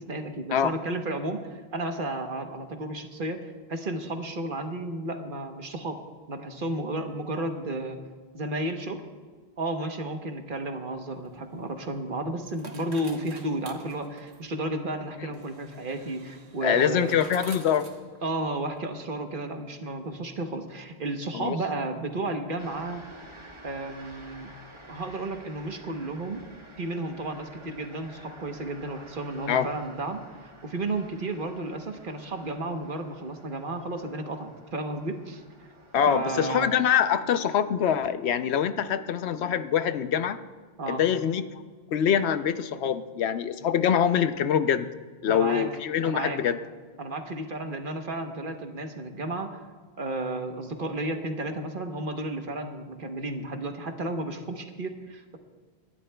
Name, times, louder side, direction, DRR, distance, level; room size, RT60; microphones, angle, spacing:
voice 1, 0.0-6.0 6.3-8.0 8.3-9.0 9.6-17.1 18.2-23.0 23.6-24.5 24.9-26.4 26.8-30.2 30.6-35.4 36.1-36.7 40.8-41.0 45.3-45.7 46.0-46.4 47.0-49.5 50.0-55.4, right 2 dB, 55° right, 5 dB, 1.2 m, -33 dB
sound 1, 11.1-18.8, right 3 dB, 85° right, 1.5 m, -50 dB
voice 2, 16.6-17.9 21.3-21.6 29.5-29.7 35.9-40.4 40.9-41.4 41.9-44.9 45.2-46.6, left 8 dB, 80° left, 11 dB, 0.9 m, -24 dB
sound 2, 22.6-36.4, right 1 dB, 30° right, 1.4 m, -50 dB
27.0 x 11.5 x 2.3 m, 1.4 s
omnidirectional pair, 1.1 m